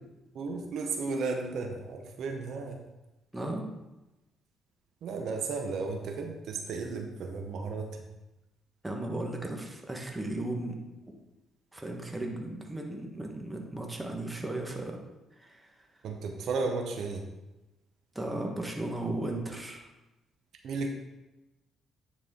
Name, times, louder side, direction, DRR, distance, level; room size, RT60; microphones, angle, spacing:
voice 1, 0.3-2.8 5.0-8.1 16.0-17.3 20.6-20.9, right 4 dB, 70° right, 3 dB, 0.8 m, -34 dB
voice 2, 8.8-10.8 11.7-15.0 15.4-15.7 18.1-19.8, right 1 dB, 10° right, 1 dB, 1.3 m, -35 dB
9.5 x 4.2 x 3.7 m, 1.0 s
cardioid pair, 80°, 0 cm